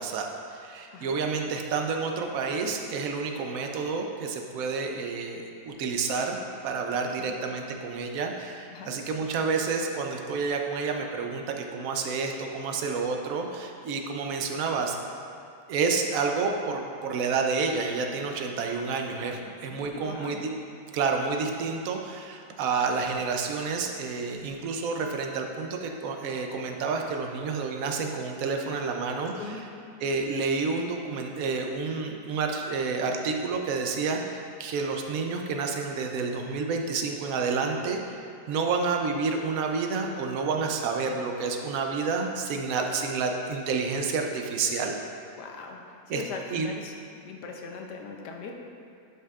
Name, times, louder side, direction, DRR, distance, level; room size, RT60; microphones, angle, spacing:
voice 1, 0.0-6.4 6.6-15.0 15.7-20.5 20.9-29.6 30.0-38.2 38.5-45.0 46.1-46.2 46.5-46.7, right 4 dB, 65° right, 3 dB, 1.0 m, -29 dB
voice 2, 19.4-20.4 29.4-29.8 45.4-46.9 47.2-48.5, left 4 dB, 80° left, 2 dB, 1.3 m, -40 dB
11.0 x 5.5 x 2.4 m, 2.5 s
omnidirectional pair, 1.8 m